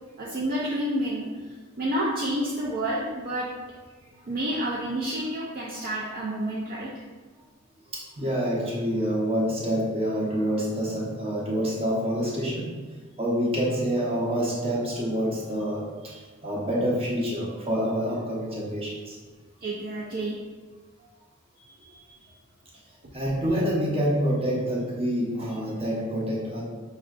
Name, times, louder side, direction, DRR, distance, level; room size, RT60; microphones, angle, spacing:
voice 1, 0.2-3.5 4.3-7.0 16.1-16.2 19.6-20.4 21.6-22.3 23.0-23.1, right 1 dB, 45° right, -5 dB, 0.4 m, -30 dB
voice 2, 7.9-12.7 13.2-19.2 23.1-26.6, equal, 30° right, -5 dB, 0.8 m, -27 dB
5.3 x 2.4 x 2.4 m, 1.4 s
head